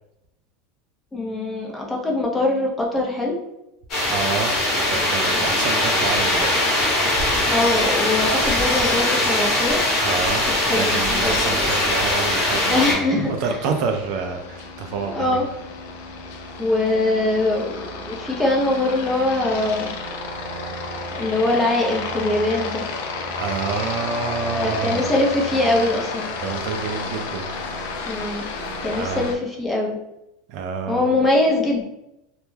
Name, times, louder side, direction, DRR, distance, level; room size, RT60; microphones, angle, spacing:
voice 1, 1.1-3.3 7.5-9.8 10.6-11.6 12.7-13.3 15.0-15.5 16.6-20.0 21.1-22.8 24.4-26.3 28.1-28.5 28.8-30.0 30.9-31.8, left 2 dB, 10° left, -2 dB, 0.5 m, -22 dB
sound 1, 3.9-12.9, left 1 dB, 40° left, 1.0 m, -21 dB
voice 2, 4.1-6.5 10.0-15.4 23.4-25.1 26.4-27.5 28.9-29.3 30.5-31.1, right 5 dB, 55° right, 5 dB, 0.3 m, -28 dB
Aircraft, 13.0-29.3, left 3 dB, 75° left, 0.4 m, -32 dB
2.2 x 2.1 x 3.1 m, 0.87 s
supercardioid pair, 150°, 0 cm